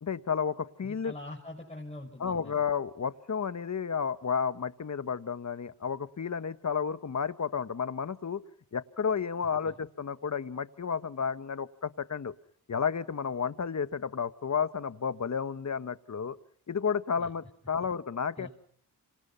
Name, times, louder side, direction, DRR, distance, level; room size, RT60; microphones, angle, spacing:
voice 1, 0.0-1.1 2.2-8.4 8.7-12.3 12.7-16.4 16.7-18.5, left 6 dB, 40° left, 12 dB, 1.6 m, -32 dB
voice 2, 0.8-2.6 9.6-9.8 17.2-17.3 18.4-18.5, left 1 dB, 15° left, -1 dB, 6.2 m, -44 dB
29.5 x 26.5 x 5.8 m, 0.65 s
supercardioid pair, 55°, 40 cm